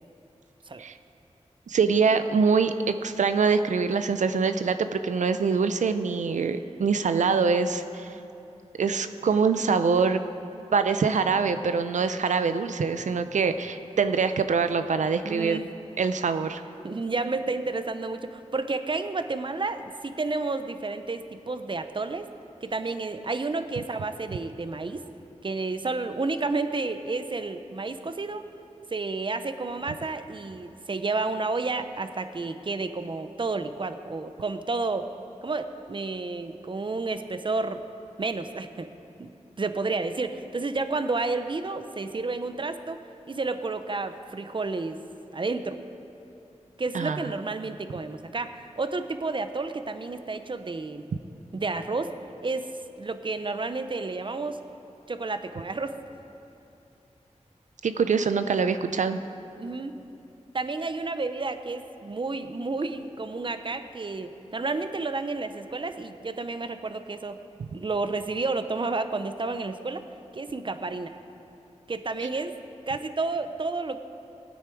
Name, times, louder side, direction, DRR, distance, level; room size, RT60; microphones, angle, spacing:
voice 1, 1.7-8.1 8.8-10.2 10.7-15.6 16.0-16.6 46.9-47.2 57.8-59.2, right 5 dB, 85° right, 10 dB, 0.5 m, -24 dB
voice 2, 15.2-15.7 16.8-22.3 22.6-25.0 25.4-28.5 28.9-35.1 35.4-37.8 38.2-38.9 39.2-39.3 39.6-43.0 43.3-45.0 45.3-45.8 46.8-51.0 51.5-52.1 52.4-52.7 53.0-54.6 55.1-56.0 59.6-59.9 60.5-67.4 67.7-70.0 70.3-71.2 71.9-72.5 72.9-74.0, right 3 dB, 40° right, 9 dB, 0.7 m, -31 dB
17.0 x 9.4 x 4.6 m, 2.8 s
wide cardioid pair, 60°, 12 cm